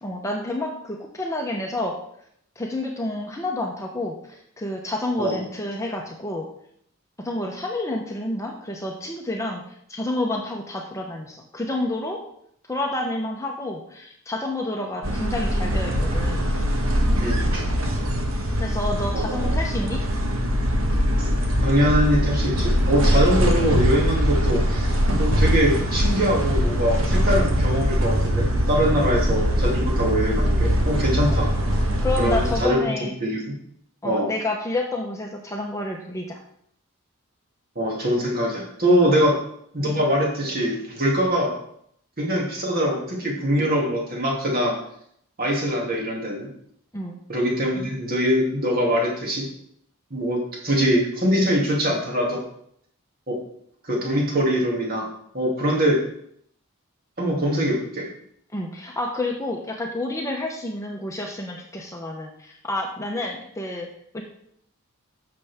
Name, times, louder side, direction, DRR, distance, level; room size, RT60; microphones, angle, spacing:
voice 1, 0.0-2.0 2.6-6.5 7.2-9.6 9.9-12.2 12.7-16.4 18.6-20.0 29.0-29.1 31.3-31.4 32.0-33.2 34.0-36.4 39.1-39.3 46.9-47.2 58.5-63.9 64.1-64.2, left 2 dB, 15° left, 1 dB, 0.9 m, -29 dB
sound 1, 15.0-32.7, equal, 70° right, 1.4 m, -22 dB
voice 2, 17.2-17.6 19.1-19.5 21.2-21.3 21.6-31.5 32.2-33.6 34.0-34.3 37.7-39.4 39.7-41.5 42.2-44.8 45.4-46.5 47.3-49.5 50.1-52.4 53.3-53.4 53.8-55.1 55.3-56.0 57.2-58.1, equal, 45° right, -2 dB, 2.7 m, -23 dB
11.0 x 6.9 x 3.6 m, 0.69 s
head